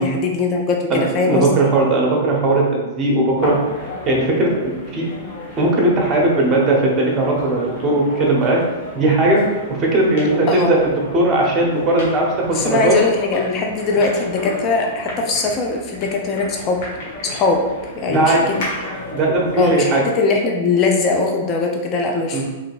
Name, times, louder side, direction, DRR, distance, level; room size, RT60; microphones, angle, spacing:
voice 1, 0.0-1.5 10.5-10.7 12.4-16.8 17.2-17.6 17.9-18.6 19.6-22.5, left 3 dB, 35° left, 1 dB, 0.5 m, -20 dB
voice 2, 0.9-3.6 4.1-5.1 5.6-8.6 8.9-9.4 9.8-10.8 11.1-13.0 18.1-18.5 19.1-20.0 22.3-22.4, right 2 dB, 30° right, -1 dB, 1.0 m, -18 dB
sound 1, 3.4-19.9, left 1 dB, 55° left, 1.3 m, -32 dB
3.6 x 3.2 x 2.5 m, 1.2 s
hypercardioid pair, 115°, 0 cm